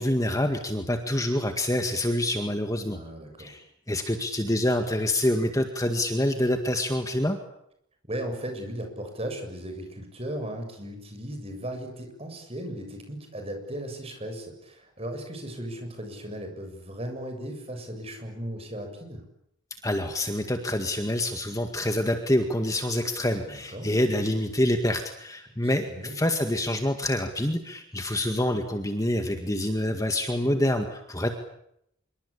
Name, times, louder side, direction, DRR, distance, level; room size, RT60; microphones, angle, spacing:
voice 1, 0.0-3.0 3.4-7.4 19.8-31.3, left 1 dB, 15° left, 6 dB, 1.9 m, -26 dB
voice 2, 2.9-3.5 8.0-19.3 23.5-23.9 25.6-26.1, right 1 dB, 30° right, 5 dB, 7.2 m, -36 dB
26.5 x 23.5 x 8.6 m, 0.75 s
head